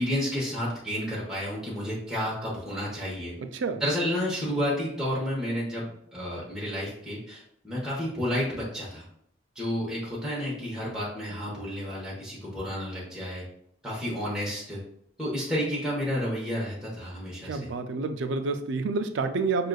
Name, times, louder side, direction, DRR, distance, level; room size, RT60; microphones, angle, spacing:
voice 1, 0.0-3.4 3.8-9.1 9.5-13.4 13.8-14.8 15.2-17.7, equal, 5° right, -7 dB, 1.0 m, -31 dB
voice 2, 3.4-3.8 17.4-19.7, right 4 dB, 75° right, 8 dB, 0.4 m, -29 dB
6.3 x 2.5 x 2.3 m, 0.71 s
head